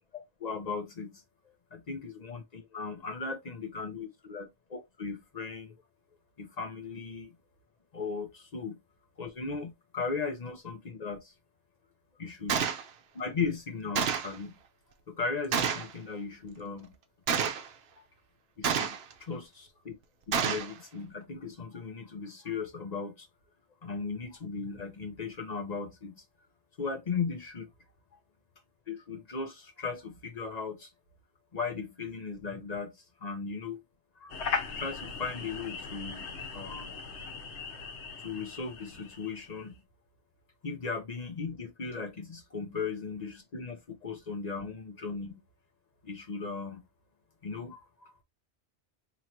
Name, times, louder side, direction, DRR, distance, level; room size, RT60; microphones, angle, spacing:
voice 1, 0.1-1.2 1.7-5.8 6.4-7.4 7.9-8.8 9.2-11.3 12.2-12.7 13.1-14.6 15.1-16.9 18.0-18.1 18.6-20.0 20.3-23.3 23.8-26.2 26.8-27.7 28.1-28.2 28.9-30.9 31.5-33.8 34.2-34.3 34.8-36.9 38.2-39.8 40.6-45.4 46.0-46.8 47.4-48.2, left 5 dB, 40° left, 0.7 m, -37 dB
Gunshot gunfire, 12.5-12.8 14.0-14.4 15.5-15.9 17.3-17.7 18.6-19.1 20.3-20.7, right 7 dB, 70° right, 0.9 m, -28 dB
sound 1, 34.3-39.6, left 5 dB, 85° left, 1.2 m, -38 dB
2.9 x 2.6 x 4.4 m
omnidirectional pair, 1.1 m